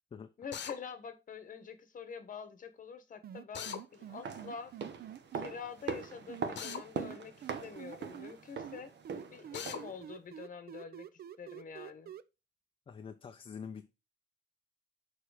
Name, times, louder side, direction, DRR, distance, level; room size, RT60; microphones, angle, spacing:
voice 1, 0.4-4.7 5.3-7.3 7.6-8.9 9.3-11.1 11.4-12.1, left 6 dB, 50° left, 1.1 m, -46 dB
Drill, 0.5-0.8 3.5-3.8 6.6-6.8 9.5-9.8, left 8 dB, 80° left, 0.8 m, -40 dB
sound 1, 3.2-5.5 6.3-8.3 8.6-12.2, right 10 dB, 60° right, 0.5 m, -47 dB
sound 2, 4.0-10.0 10.3-10.4, right 5 dB, 75° right, 1.1 m, -42 dB
voice 2, 12.9-13.9, left 6 dB, 30° left, 0.4 m, -45 dB
6.7 x 4.3 x 4.8 m
wide cardioid pair, 175°, 18 cm